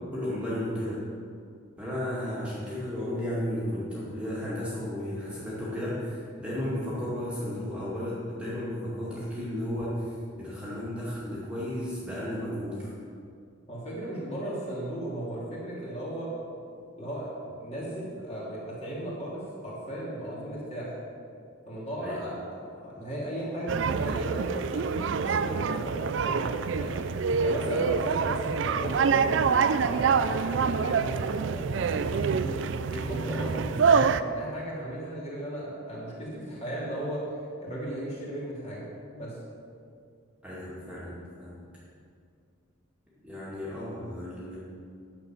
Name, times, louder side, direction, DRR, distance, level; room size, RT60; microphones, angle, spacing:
voice 1, 0.0-1.1 1.8-12.9 22.0-22.2 27.7-27.9 40.4-41.6 43.2-44.6, left 1 dB, 5° right, -9 dB, 2.2 m, -34 dB
voice 2, 13.7-16.3 16.9-20.9 21.7-27.0 27.4-29.4 29.7-32.5 32.9-37.2 37.6-38.9 39.1-39.3, right 1 dB, 30° left, -6 dB, 2.9 m, -36 dB
sound 1, 23.7-34.2, right 5 dB, 65° right, 0.4 m, -26 dB
10.5 x 7.6 x 5.8 m, 2.4 s
head